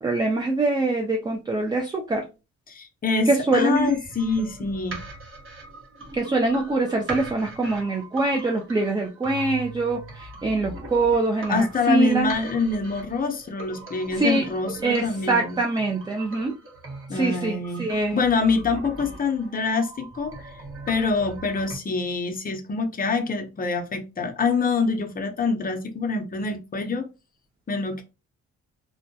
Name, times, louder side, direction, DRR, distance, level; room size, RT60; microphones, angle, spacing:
voice 1, 0.0-2.3 3.3-3.9 6.1-12.3 14.2-14.5 14.8-16.5 17.1-18.2, right 2 dB, 15° right, 0.3 m, -24 dB
voice 2, 2.7-5.0 11.5-15.6 17.1-17.9 18.1-20.5 20.9-27.1 27.7-28.0, left 4 dB, 30° left, 0.6 m, -25 dB
sound 1, 3.7-21.7, right 2 dB, 45° right, 1.0 m, -41 dB
2.2 x 2.1 x 2.6 m
cardioid pair, 90°, 30 cm